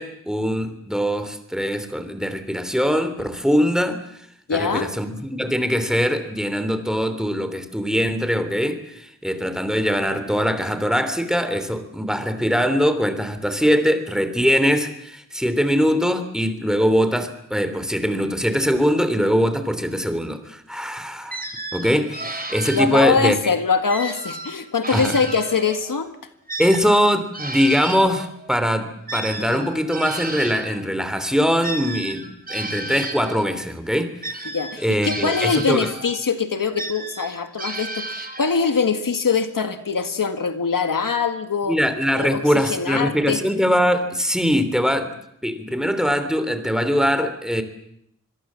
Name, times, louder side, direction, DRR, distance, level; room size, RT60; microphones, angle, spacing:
voice 1, 0.0-4.0 4.5-21.4 21.7-23.4 24.9-25.1 26.6-34.5 34.8-35.9 41.7-45.1 45.4-47.6, equal, ahead, 9 dB, 3.1 m, -22 dB
voice 2, 4.5-4.9 22.7-26.1 34.5-41.8 42.2-42.4 42.7-43.4, left 5 dB, 85° left, 8 dB, 1.8 m, -23 dB
sound 1, 21.3-23.3 23.9-26.0 26.5-30.8 31.6-33.6 34.2-36.2 36.8-38.7, right 2 dB, 25° right, 3.6 m, -33 dB
25.5 x 22.0 x 7.5 m, 0.75 s
wide cardioid pair, 75°, 32 cm